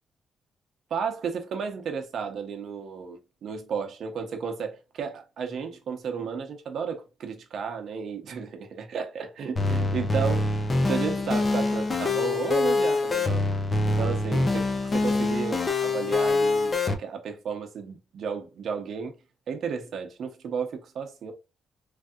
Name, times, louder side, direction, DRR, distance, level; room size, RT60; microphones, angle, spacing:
voice 1, 0.9-13.5 13.8-14.6 14.9-19.2 19.5-21.3, right 6 dB, 55° right, 0.7 m, -33 dB
sound 1, 9.6-16.9, left 2 dB, 25° left, 0.5 m, -25 dB
3.2 x 2.6 x 2.3 m
cardioid pair, 165°, 0 cm